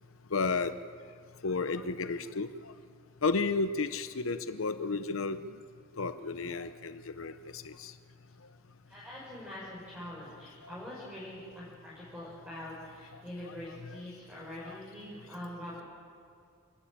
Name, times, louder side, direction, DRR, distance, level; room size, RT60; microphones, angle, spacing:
voice 1, 0.3-0.7 1.4-2.5 3.2-5.4 6.0-7.9 13.4-13.5 13.9-14.0, left 4 dB, 90° left, 11 dB, 0.8 m, -32 dB
voice 2, 8.9-15.8, left 1 dB, 10° right, -9 dB, 6.1 m, -44 dB
28.0 x 12.5 x 8.7 m, 2.3 s
head